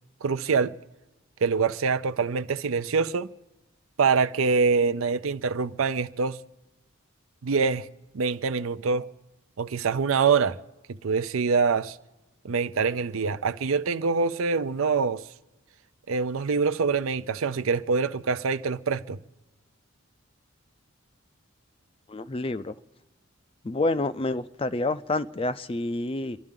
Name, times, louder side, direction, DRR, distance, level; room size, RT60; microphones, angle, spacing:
voice 1, 0.2-0.7 1.4-3.3 4.0-6.4 7.4-7.9 8.1-9.1 9.6-10.6 10.9-12.0 12.4-15.2 16.1-19.2, right 5 dB, 75° right, 0.5 m, -25 dB
voice 2, 22.1-22.7 23.6-26.4, left 2 dB, 25° left, 0.4 m, -28 dB
28.0 x 12.0 x 3.7 m
head